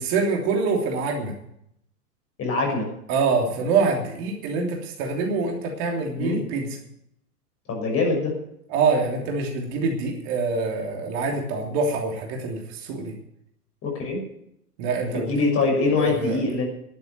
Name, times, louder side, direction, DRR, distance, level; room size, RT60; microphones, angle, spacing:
voice 1, 0.0-1.3 3.1-6.7 8.7-13.1 14.8-15.5 16.0-16.4, right 4 dB, 40° right, 1 dB, 3.1 m, -25 dB
voice 2, 2.4-2.9 6.2-6.4 7.7-8.4 13.8-14.2 15.1-16.6, left 3 dB, 30° left, 0 dB, 6.4 m, -23 dB
11.5 x 9.4 x 9.3 m, 0.74 s
figure-of-eight pair, 100°, 47 cm